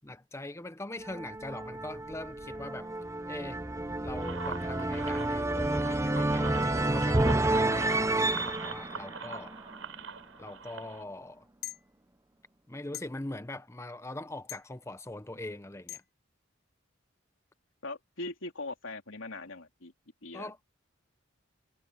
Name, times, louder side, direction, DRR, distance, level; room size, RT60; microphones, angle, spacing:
voice 1, 0.0-2.9 3.3-3.6 4.0-9.5 10.4-11.5 12.7-16.0 20.3-20.6, left 2 dB, 15° left, 0.8 m, -42 dB
sound 1, 1.0-10.0, right 1 dB, 15° right, 0.8 m, -30 dB
sound 2, 4.2-11.0, right 5 dB, 90° right, 5.4 m, -43 dB
sound 3, 11.6-11.8 12.9-13.0 14.5-14.7 15.9-16.0, left 13 dB, 50° left, 1.5 m, -40 dB
voice 2, 17.8-19.9 20.2-20.5, left 2 dB, 80° left, 3.1 m, -40 dB
head